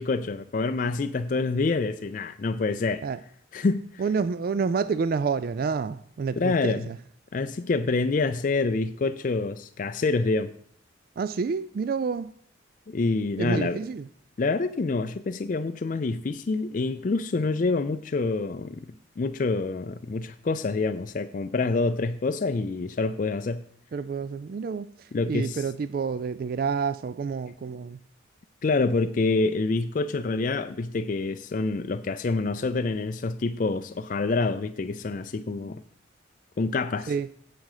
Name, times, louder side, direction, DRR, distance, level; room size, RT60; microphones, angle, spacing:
voice 1, 0.0-3.0 3.5-4.0 6.4-6.9 7.3-10.5 12.9-13.8 14.4-18.9 19.2-23.6 25.1-25.6 28.6-35.8 36.6-37.1, left 3 dB, 40° left, 9 dB, 0.4 m, -27 dB
voice 2, 4.0-7.0 11.2-12.3 13.4-14.1 23.9-28.0 37.1-37.3, right 5 dB, 45° right, 13 dB, 0.3 m, -29 dB
9.1 x 7.7 x 4.8 m, 0.65 s
head